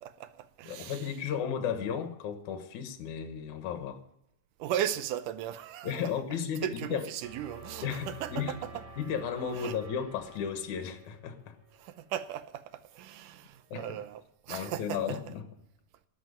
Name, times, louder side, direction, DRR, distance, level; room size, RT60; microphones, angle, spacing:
voice 1, 0.0-1.1 4.6-6.1 6.6-8.7 9.5-9.8 11.8-15.2, right 11 dB, 85° right, 2.3 m, -37 dB
voice 2, 0.7-4.0 5.8-7.1 7.8-8.6 9.0-11.6 13.7-13.9 14.5-15.4, left 7 dB, 70° left, 2.6 m, -34 dB
sound 1, 7.2-13.2, right 3 dB, 50° right, 4.5 m, -50 dB
13.0 x 7.8 x 9.3 m
omnidirectional pair, 3.6 m